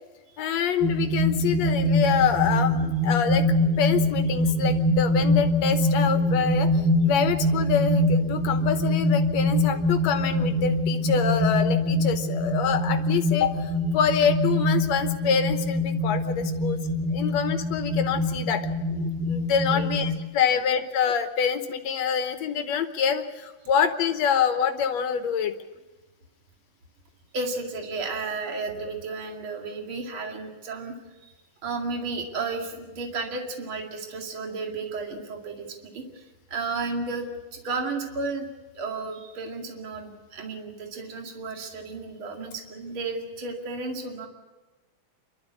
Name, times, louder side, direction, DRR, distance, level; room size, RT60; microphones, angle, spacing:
voice 1, 0.4-3.4 3.8-16.8 17.1-25.5, left 7 dB, 65° left, 8 dB, 2.0 m, -26 dB
sound 1, 0.8-20.2, left 1 dB, 5° left, 2.2 m, -24 dB
voice 2, 27.3-30.9 31.6-38.5 38.7-44.3, right 3 dB, 40° right, 2 dB, 2.9 m, -33 dB
28.0 x 12.5 x 8.5 m, 1.2 s
omnidirectional pair, 3.7 m